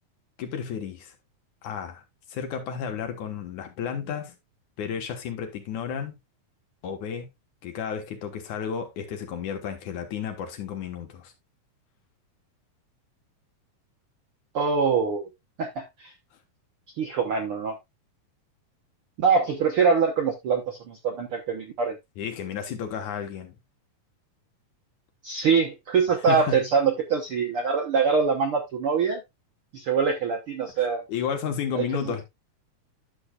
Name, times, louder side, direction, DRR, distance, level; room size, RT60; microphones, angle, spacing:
voice 1, 0.4-1.1 1.6-2.0 2.3-4.4 4.8-6.2 6.8-7.3 7.6-11.3 22.2-23.6 26.3-26.7 30.8-32.2, left 7 dB, 65° left, 2.6 m, -32 dB
voice 2, 14.5-15.3 15.6-16.1 17.0-17.7 19.2-21.9 25.2-29.2 29.7-31.0 31.7-32.2, right 5 dB, 65° right, 1.3 m, -24 dB
11.5 x 6.9 x 2.3 m
omnidirectional pair, 3.9 m